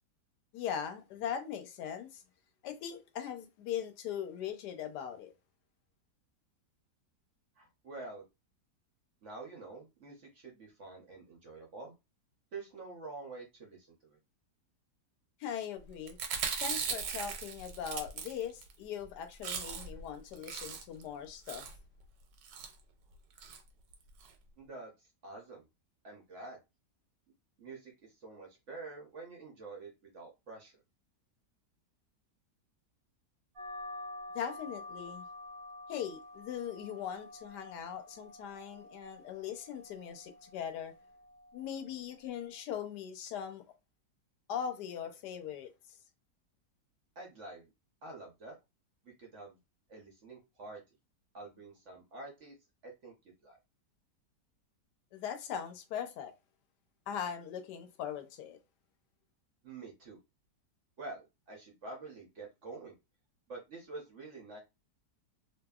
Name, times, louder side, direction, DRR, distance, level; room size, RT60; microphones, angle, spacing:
voice 1, 0.5-2.2 2.6-5.3 15.4-16.2 16.6-21.6 34.3-35.3 35.9-40.9 41.5-43.6 44.5-46.0 55.1-56.3 57.1-58.6, left 8 dB, 75° left, 1.1 m, -40 dB
voice 2, 7.6-8.2 9.2-11.9 12.5-14.2 24.6-24.9 25.2-25.6 26.0-26.6 27.6-30.7 47.2-47.7 48.0-48.5 49.0-49.6 49.9-50.8 51.3-52.5 52.8-53.1 53.4-53.6 59.6-60.2 61.0-62.9 63.5-64.6, right 3 dB, 60° right, 0.8 m, -47 dB
Chewing mastication, 16.1-18.7 19.0-19.1 19.3-20.0 20.3-21.0 21.5-21.8 22.4-22.7 23.4-23.6 23.9-24.0 24.2-24.3, right 6 dB, 90° right, 1.2 m, -38 dB
sound 1, 33.6-42.6, left 2 dB, 30° right, 0.7 m, -49 dB
2.7 x 2.5 x 2.3 m
omnidirectional pair, 1.8 m